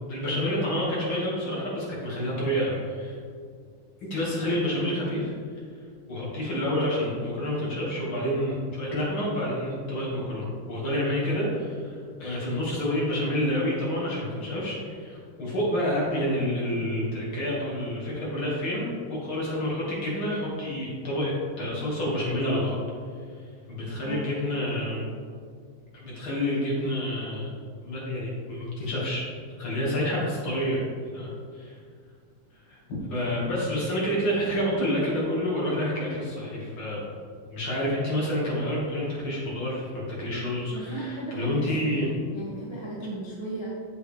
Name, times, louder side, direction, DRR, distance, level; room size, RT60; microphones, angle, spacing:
voice 1, 0.1-3.2 4.0-5.3 6.1-22.8 23.3-23.4 23.7-25.1 25.9-27.5 27.8-29.2 29.6-30.8 31.1-31.8 32.7-37.0 37.5-42.1, equal, 45° left, -6 dB, 2.5 m, -28 dB
voice 2, 24.0-24.3 40.7-43.7, right 2 dB, 20° right, -7 dB, 0.6 m, -36 dB
8.2 x 7.8 x 3.5 m, 2.1 s
omnidirectional pair, 3.6 m